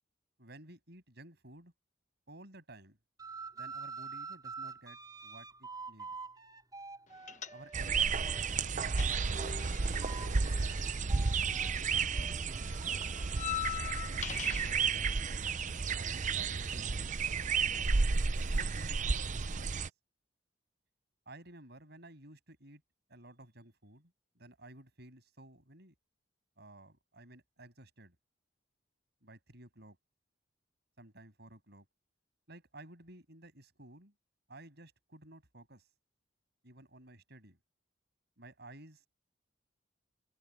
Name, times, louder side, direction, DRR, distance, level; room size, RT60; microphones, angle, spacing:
voice 1, 0.4-1.7 2.3-3.0 3.5-6.1 7.5-9.3 9.8-10.9 11.6-13.1 13.4-14.2 14.6-15.1 15.9-18.0 18.5-19.8 21.3-22.8 23.1-25.9 26.6-28.2 29.2-30.0 31.0-31.9 32.5-34.1 34.5-35.9 36.6-37.6 38.4-39.1, right 1 dB, 60° right, 7.5 m, -54 dB
sound 1, 3.2-8.4 8.9-14.2, right 4 dB, 20° right, 4.8 m, -48 dB
sound 2, 7.3-8.0 8.3-11.7 11.9-14.8, left 10 dB, 40° left, 1.2 m, -42 dB
sound 3, 7.7-19.9, right 5 dB, 40° right, 0.6 m, -32 dB
head